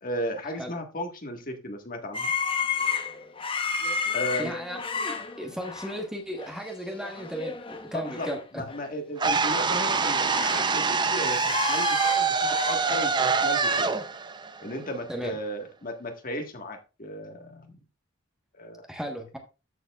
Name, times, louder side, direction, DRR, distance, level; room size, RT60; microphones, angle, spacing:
voice 1, 0.0-2.3 3.5-3.7 4.1-4.6 7.9-8.3 8.5-13.9 14.6-17.8 18.5-18.8, equal, 45° left, 4 dB, 1.6 m, -35 dB
sound 1, 2.1-6.0 6.4-6.6 6.9-8.4 8.7-8.8 9.4-10.7 11.0-12.7, left 5 dB, 25° left, 1.0 m, -32 dB
voice 2, 4.4-8.7 15.1-15.4 18.9-19.4, equal, 5° right, 2 dB, 1.3 m, -35 dB
sound 2, 9.2-15.3, right 5 dB, 20° right, 0.5 m, -25 dB
13.5 x 7.0 x 2.4 m, 0.30 s
head